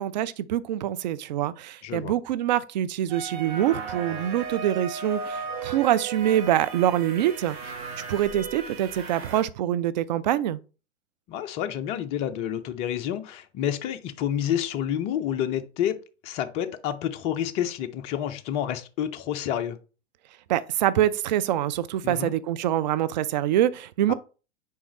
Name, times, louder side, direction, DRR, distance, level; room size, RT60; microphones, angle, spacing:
voice 1, 0.0-7.8 8.1-10.6 20.5-24.1, right 12 dB, 40° right, 0.4 m, -25 dB
voice 2, 1.8-2.1 11.3-16.0 16.2-19.8 22.0-22.3 24.1-24.2, left 10 dB, 20° left, 0.4 m, -29 dB
sound 1, 3.1-9.4, right 5 dB, 60° right, 1.7 m, -36 dB
7.0 x 4.9 x 3.0 m
figure-of-eight pair, 100°, 35 cm